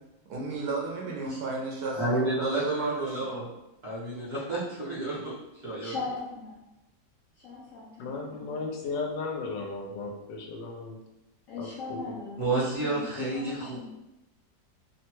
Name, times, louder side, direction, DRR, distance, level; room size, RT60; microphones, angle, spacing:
voice 1, 0.3-3.4, right 3 dB, 70° right, -2 dB, 1.0 m, -33 dB
voice 2, 1.9-3.4 3.8-5.3 5.6-6.0 12.4-13.9, right 2 dB, 45° right, -8 dB, 0.9 m, -30 dB
voice 3, 5.8-6.6 7.4-8.5 11.5-13.9, left 4 dB, 75° left, -6 dB, 0.8 m, -39 dB
voice 4, 8.0-11.0 11.6-12.2, left 3 dB, 90° left, 1 dB, 1.3 m, -35 dB
3.0 x 2.1 x 2.9 m, 0.92 s
omnidirectional pair, 1.8 m